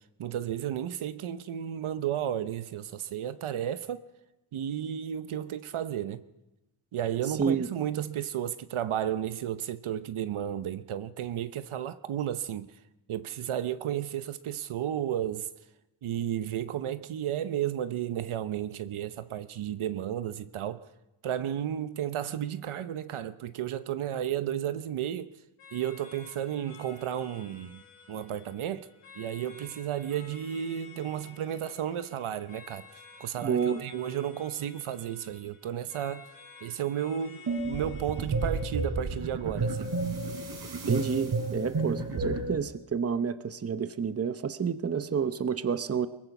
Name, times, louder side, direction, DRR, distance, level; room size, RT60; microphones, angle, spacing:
voice 1, 0.2-4.0 4.5-6.2 6.9-12.7 13.1-15.5 16.0-20.9 21.2-25.3 25.7-27.8 28.1-28.9 29.2-32.9 33.2-36.3 36.6-39.9, right 10 dB, 75° right, 1.0 m, -33 dB
sound 1, 25.6-40.6, left 5 dB, 90° left, 5.6 m, -53 dB
voice 2, 33.4-33.8 40.9-46.1, right 6 dB, 30° right, 0.9 m, -29 dB
sound 2, 37.5-42.6, right 3 dB, 50° right, 3.8 m, -31 dB
22.5 x 20.5 x 6.1 m
wide cardioid pair, 115°, 50 cm